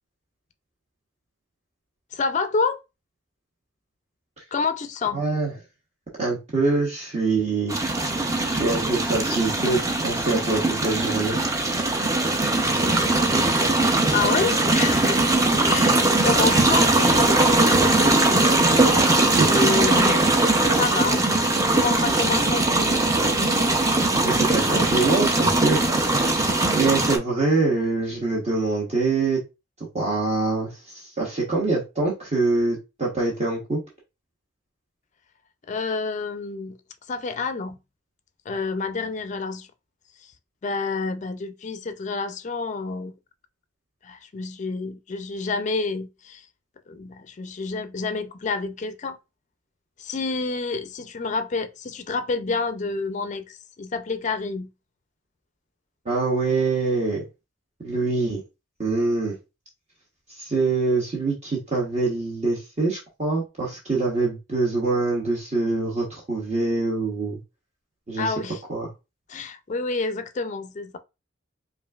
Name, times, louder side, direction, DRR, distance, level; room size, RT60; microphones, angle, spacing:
voice 1, 2.1-2.8 4.5-5.2 14.1-15.4 15.7-18.2 18.7-19.1 19.4-23.0 26.9-27.1 35.7-36.8 37.1-37.8 38.5-39.7 40.2-40.3 40.6-43.1 44.0-46.5 46.9-49.2 50.0-54.7 68.2-68.6 69.3-71.0, left 4 dB, 35° left, 0.4 m, -29 dB
voice 2, 5.1-5.5 6.2-7.8 8.5-11.4 18.3-19.0 19.4-19.5 24.2-25.9 26.2-29.4 29.9-33.8 56.0-57.2 57.8-58.4 58.8-59.4 60.3-67.4 68.1-68.3 68.7-68.9, right 3 dB, 35° right, 1.0 m, -24 dB
sound 1, 7.7-27.2, right 2 dB, 15° right, 0.5 m, -20 dB
5.1 x 2.5 x 2.3 m
head